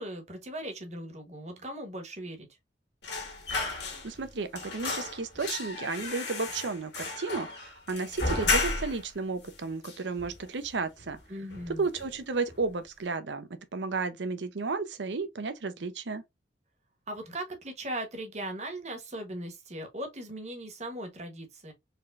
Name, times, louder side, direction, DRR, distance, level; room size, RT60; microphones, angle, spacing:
voice 1, 0.0-2.5 11.3-11.9 17.1-21.7, right 1 dB, 40° right, 1.1 m, -38 dB
sound 1, 3.0-4.3 4.5-9.1 9.4-9.5 9.8-10.7 11.0-11.2 11.5-12.2 12.5-12.7, left 3 dB, 70° left, 1.8 m, -33 dB
voice 2, 3.8-11.2 11.8-16.2, right 4 dB, 80° right, 0.7 m, -33 dB
4.2 x 3.2 x 2.5 m
head